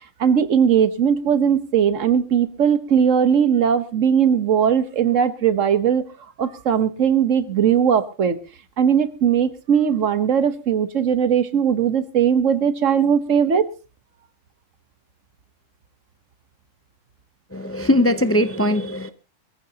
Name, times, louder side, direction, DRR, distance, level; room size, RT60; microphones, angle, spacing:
voice 1, 0.2-6.0 6.4-8.4 8.8-13.7, right 8 dB, 85° right, 1.5 m, -19 dB
voice 2, 17.5-19.1, left 1 dB, 15° left, 0.4 m, -20 dB
22.0 x 14.5 x 2.9 m
omnidirectional pair, 1.3 m